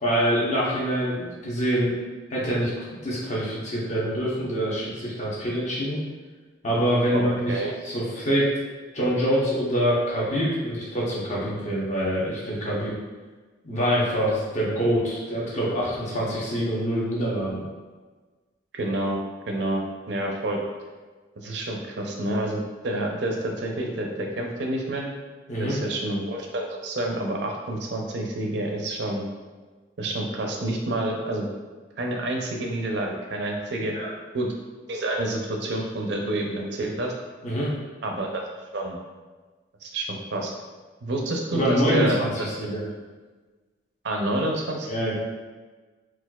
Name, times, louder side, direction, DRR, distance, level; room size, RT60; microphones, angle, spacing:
voice 1, 0.0-2.0 2.3-6.0 6.6-8.5 8.9-12.9 13.6-17.6 25.5-25.8 33.9-34.1 37.4-37.7 41.5-42.8 44.9-45.1, equal, 40° left, -6 dB, 0.8 m, -25 dB
voice 2, 7.1-7.7 18.7-19.2 19.5-20.6 21.4-25.1 25.6-29.2 30.0-31.5 32.0-34.0 34.3-34.5 34.9-37.1 38.0-38.4 38.7-39.0 39.8-40.5 41.0-42.3 42.6-42.7 44.0-44.9, right 1 dB, 65° right, 1 dB, 0.5 m, -28 dB
4.2 x 2.3 x 2.3 m, 1.3 s
head